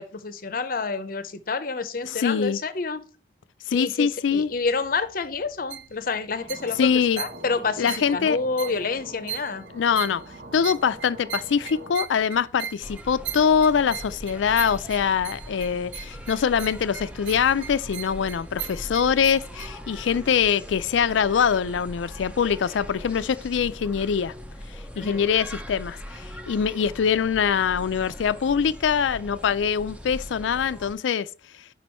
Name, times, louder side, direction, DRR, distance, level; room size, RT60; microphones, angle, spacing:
voice 1, 0.0-3.0 3.7-6.9 7.2-9.6 24.9-25.2, left 4 dB, 50° left, 0.6 m, -28 dB
voice 2, 2.1-2.6 3.7-4.5 6.8-7.2 7.8-8.4 9.7-10.2 10.5-24.3 25.0-31.3, left 7 dB, 85° left, 0.4 m, -23 dB
sound 1, 4.3-19.7, right 9 dB, 80° right, 0.5 m, -40 dB
sound 2, 6.4-12.0, right 2 dB, 50° right, 0.8 m, -43 dB
sound 3, 12.8-30.9, equal, 5° right, 0.6 m, -40 dB
6.2 x 5.0 x 4.3 m
head